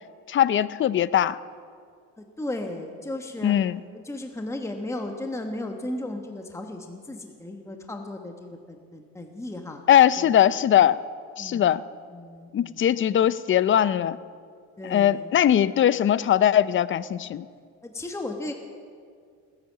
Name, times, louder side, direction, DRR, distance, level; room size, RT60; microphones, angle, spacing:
voice 1, 0.3-1.4 3.4-3.8 9.9-11.0 11.4-11.8 12.5-14.2 14.8-17.4, left 10 dB, 35° left, 17 dB, 0.5 m, -20 dB
voice 2, 2.2-3.5 3.9-9.8 10.2-10.3 11.4-11.8 12.1-12.9 14.8-15.3 17.8-18.5, left 1 dB, 10° left, 4 dB, 1.3 m, -35 dB
17.5 x 10.5 x 7.5 m, 2.2 s
cardioid pair, 100°, 36 cm